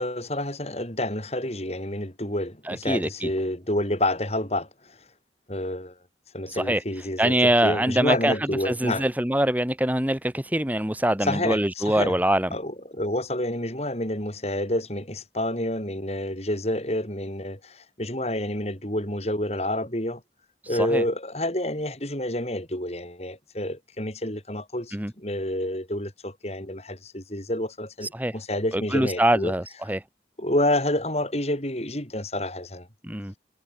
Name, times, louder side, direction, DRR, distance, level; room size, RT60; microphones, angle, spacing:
voice 1, 0.0-5.0 5.5-5.9 6.3-9.1 11.2-12.2 12.5-20.2 20.7-29.5 30.4-32.9, left 1 dB, 35° left, 7.2 m, -29 dB
voice 2, 2.7-3.3 6.5-6.8 7.2-8.3 8.6-12.5 20.8-21.0 24.9-25.1 28.1-28.3 28.7-30.0 33.0-33.3, right 1 dB, 10° right, 1.9 m, -24 dB
head